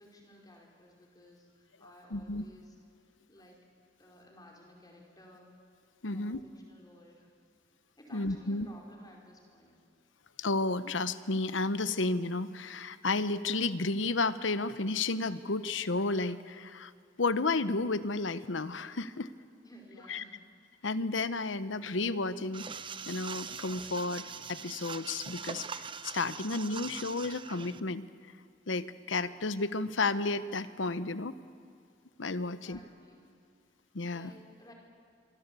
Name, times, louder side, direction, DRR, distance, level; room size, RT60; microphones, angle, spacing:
voice 1, 0.0-2.7 3.3-3.6 4.0-5.6 6.1-7.3 8.0-9.8 19.6-20.4 32.4-33.3 34.1-34.7, left 1 dB, 20° left, -1 dB, 4.8 m, -56 dB
voice 2, 2.1-2.5 6.0-6.4 8.1-8.7 10.4-16.9 17.2-19.3 20.1-20.2 20.8-22.7 23.1-28.0 28.7-31.3 32.2-32.8 33.9-34.3, left 3 dB, 75° left, 14 dB, 1.0 m, -32 dB
sound 1, 22.5-27.8, right 6 dB, 25° right, 0.7 m, -42 dB
26.0 x 24.0 x 8.4 m, 2.4 s
head